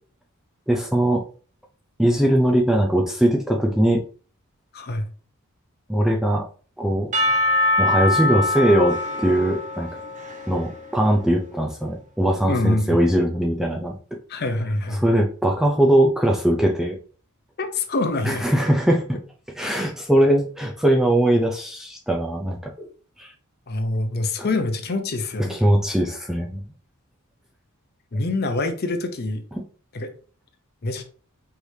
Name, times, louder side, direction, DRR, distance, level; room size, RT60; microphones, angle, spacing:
voice 1, 0.7-1.2 2.0-4.0 5.9-6.5 6.8-7.1 7.8-9.9 10.5-14.0 14.9-17.0 18.2-19.1 19.5-22.9 23.2-23.3 24.4-24.5 25.5-26.6, right 1 dB, ahead, 1 dB, 0.4 m, -20 dB
voice 2, 4.7-5.1 12.5-13.0 14.3-15.0 17.6-18.5 23.7-25.6 28.1-29.4 29.9-30.1 30.8-31.0, left 2 dB, 45° left, 7 dB, 0.6 m, -25 dB
Percussion / Church bell, 7.1-11.3, left 2 dB, 35° right, 0.7 m, -24 dB
4.7 x 3.3 x 2.7 m, 0.41 s
head